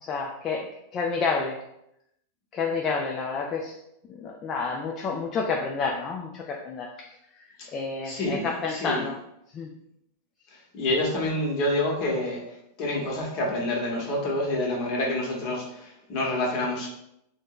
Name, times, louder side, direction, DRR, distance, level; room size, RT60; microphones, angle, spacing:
voice 1, 0.0-0.7 0.9-1.6 2.5-3.7 4.1-7.1 7.7-9.1 9.5-9.7, left 4 dB, 30° left, 0 dB, 0.3 m, -29 dB
voice 2, 8.0-9.1 10.5-16.9, left 1 dB, 45° left, -2 dB, 1.0 m, -28 dB
2.6 x 2.1 x 3.6 m, 0.81 s
supercardioid pair, 140°, 0 cm